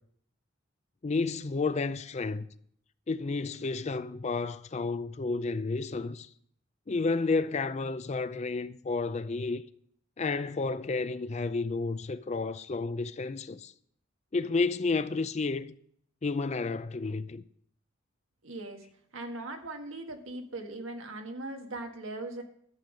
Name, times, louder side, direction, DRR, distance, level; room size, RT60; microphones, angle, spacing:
voice 1, 1.0-2.5 3.1-6.3 6.9-9.6 10.2-13.7 14.3-15.8 16.2-17.4, left 3 dB, 35° left, 0.4 m, -31 dB
voice 2, 18.4-18.9 19.1-22.4, right 2 dB, 85° right, 1.7 m, -39 dB
12.0 x 8.1 x 5.1 m
head